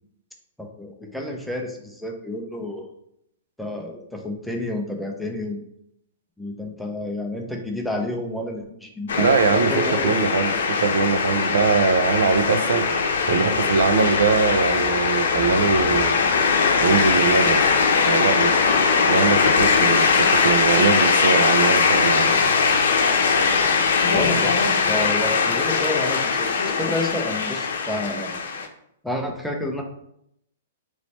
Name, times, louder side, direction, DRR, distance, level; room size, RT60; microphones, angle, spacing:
voice 1, 0.6-2.9 3.6-5.6 6.4-10.2 13.3-13.4 24.1-28.4 29.0-29.8, left 1 dB, ahead, 2 dB, 0.4 m, -30 dB
sound 1, 9.1-28.7, left 5 dB, 75° left, 0.6 m, -20 dB
voice 2, 9.1-13.0 13.3-16.2 16.8-17.6 18.0-22.3, right 5 dB, 85° right, 9 dB, 0.4 m, -22 dB
3.2 x 3.1 x 4.0 m, 0.75 s
hypercardioid pair, 170°, 0 cm